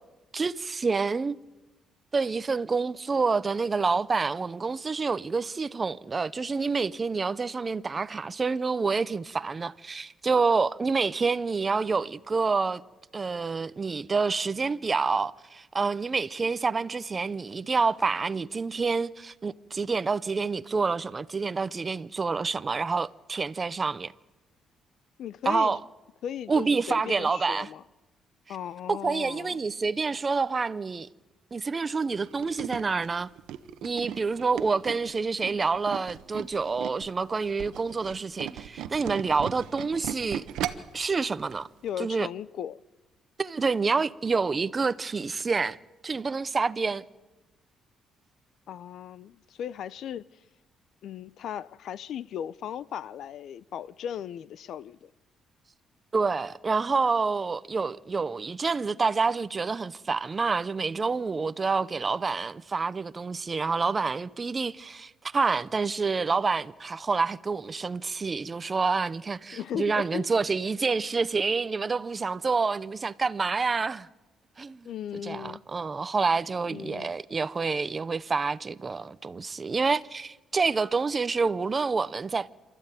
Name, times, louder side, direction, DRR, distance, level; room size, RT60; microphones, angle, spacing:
voice 1, 0.3-1.4 2.1-12.8 13.1-24.1 25.5-25.8 26.5-27.7 28.9-31.1 31.5-33.3 33.8-40.5 40.9-41.7 42.0-42.3 43.4-45.8 46.0-47.0 56.1-74.1 74.6-74.9 75.2-82.5, right 4 dB, 25° right, 0.6 m, -28 dB
voice 2, 25.2-25.8 26.2-27.8 28.5-29.6 41.8-42.8 48.7-50.3 51.0-55.1 69.5-70.3 74.8-75.6 76.7-77.1, left 9 dB, 65° left, 0.6 m, -37 dB
Tools, 32.1-37.1 37.5-41.0 41.4-41.6 41.9-42.0, right 11 dB, 90° right, 1.0 m, -37 dB
27.5 x 13.0 x 9.1 m
cardioid pair, 125°, 0 cm